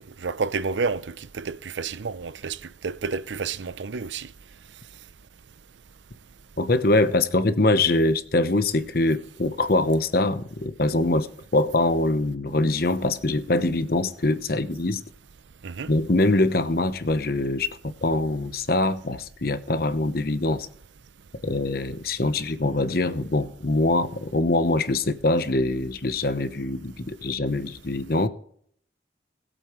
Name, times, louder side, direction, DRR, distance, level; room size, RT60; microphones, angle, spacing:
voice 1, 0.2-2.6 2.8-4.3 15.6-15.9, right 4 dB, 80° right, 0.6 m, -30 dB
voice 2, 6.6-15.0 15.9-17.7 18.0-20.7 21.4-28.3, left 2 dB, 55° left, 0.9 m, -23 dB
20.5 x 8.1 x 3.1 m
head